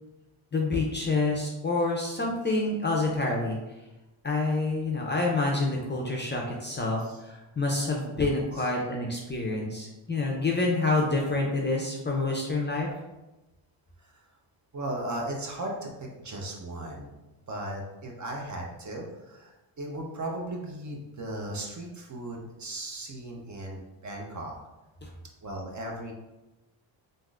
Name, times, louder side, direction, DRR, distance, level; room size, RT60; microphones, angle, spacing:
voice 1, 0.5-3.6 4.2-12.9, left 2 dB, 25° left, -1 dB, 0.5 m, -27 dB
voice 2, 14.7-17.1 17.5-24.6 25.4-26.1, right 1 dB, 35° right, 0 dB, 0.7 m, -37 dB
3.5 x 2.6 x 2.4 m, 1.0 s
cardioid pair, 80°, 50 cm